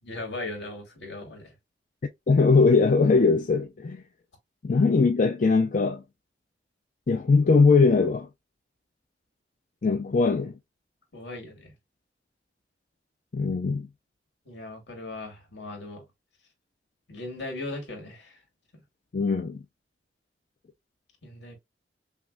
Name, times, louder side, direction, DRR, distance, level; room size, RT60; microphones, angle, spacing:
voice 1, 0.0-1.5 11.1-11.7 14.5-16.0 17.1-18.4 18.7-18.8 21.2-21.6, left 2 dB, 70° left, 2.0 m, -38 dB
voice 2, 2.3-4.0 4.6-6.0 7.1-8.3 9.8-10.5 13.3-13.9 19.1-19.6, left 4 dB, 45° left, 0.4 m, -21 dB
5.7 x 2.1 x 2.3 m
head